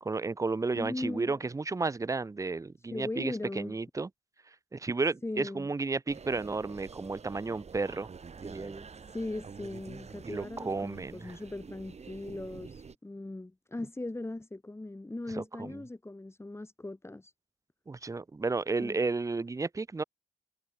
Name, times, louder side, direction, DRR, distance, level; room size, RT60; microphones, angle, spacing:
voice 1, 0.0-4.1 4.7-8.1 8.4-8.9 10.2-11.3 15.3-15.8 17.9-20.0, right 3 dB, 15° right, 0.9 m, -33 dB
voice 2, 0.8-1.5 2.8-3.8 5.2-5.7 9.1-17.3 18.8-19.0, left 2 dB, 15° left, 3.5 m, -39 dB
sound 1, 6.1-13.0, right 5 dB, 35° right, 3.0 m, -48 dB
hypercardioid pair, 50°, 19 cm